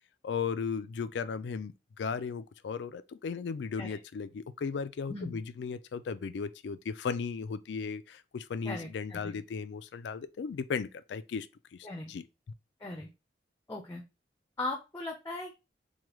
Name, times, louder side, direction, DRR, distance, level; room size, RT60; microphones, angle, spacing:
voice 1, 0.2-11.5 12.1-12.2, left 5 dB, 85° left, 0.3 m, -36 dB
voice 2, 8.6-9.4 11.8-12.1 12.8-13.1 13.7-14.0 14.6-15.6, left 2 dB, 15° left, 0.5 m, -38 dB
4.8 x 2.3 x 3.0 m
head